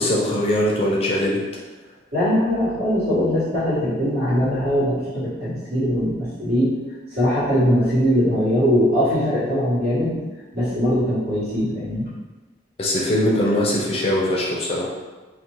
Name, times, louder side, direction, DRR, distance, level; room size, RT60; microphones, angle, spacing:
voice 1, 0.0-1.4 12.8-14.9, left 1 dB, 30° left, -3 dB, 0.4 m, -21 dB
voice 2, 2.1-6.8 7.1-10.2 10.5-12.1, equal, 60° right, -10 dB, 1.3 m, -21 dB
2.6 x 2.1 x 2.9 m, 1.2 s
head